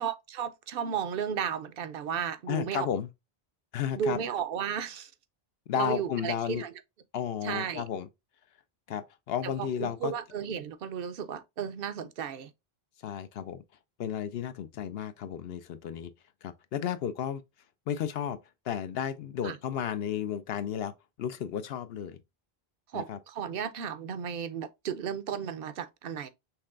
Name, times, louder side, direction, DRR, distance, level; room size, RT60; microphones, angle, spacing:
voice 1, 0.0-2.9 4.0-5.1 5.7-6.7 7.4-7.8 9.4-9.5 9.8-12.5 19.4-19.5 22.9-26.3, right 8 dB, 65° right, 0.8 m, -34 dB
voice 2, 2.5-3.1 3.7-4.2 5.7-6.6 7.1-8.1 8.9-10.1 13.0-13.6 14.0-16.1 16.4-17.4 17.9-18.4 18.6-20.9 21.2-22.2 22.9-23.2, left 9 dB, 75° left, 0.8 m, -33 dB
5.8 x 3.3 x 2.4 m
omnidirectional pair, 1.0 m